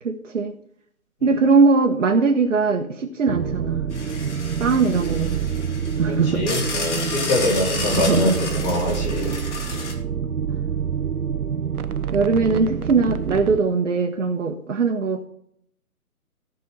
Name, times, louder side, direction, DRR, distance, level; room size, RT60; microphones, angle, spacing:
voice 1, 0.0-0.5 1.2-3.9 4.6-5.5 6.0-6.4 8.0-8.3 12.1-15.3, right 4 dB, 55° right, 1 dB, 1.2 m, -20 dB
sound 1, 3.3-13.6, right 7 dB, 70° right, 0.8 m, -27 dB
sound 2, 3.9-9.9, left 3 dB, 50° left, 2.6 m, -31 dB
voice 2, 6.1-9.3 9.7-9.8, left 1 dB, 20° left, 0 dB, 2.3 m, -24 dB
15.5 x 5.6 x 5.4 m, 0.68 s
figure-of-eight pair, 140°, 45 cm